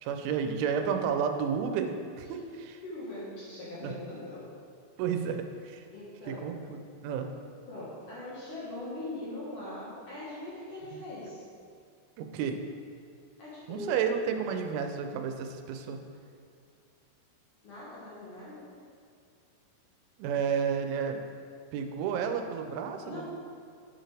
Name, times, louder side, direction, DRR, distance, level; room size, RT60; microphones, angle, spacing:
voice 1, 0.0-2.8 3.8-4.0 5.0-5.9 6.3-7.3 10.9-11.0 12.2-12.6 13.7-16.0 20.2-21.2 21.7-23.3, right 7 dB, 85° right, 6 dB, 3.1 m, -31 dB
voice 2, 2.8-4.5 5.9-6.5 7.7-11.5 13.4-14.0 17.6-18.7 23.0-23.3, left 1 dB, 60° left, -8 dB, 2.3 m, -41 dB
9.3 x 9.0 x 3.4 m, 2.4 s
omnidirectional pair, 5.5 m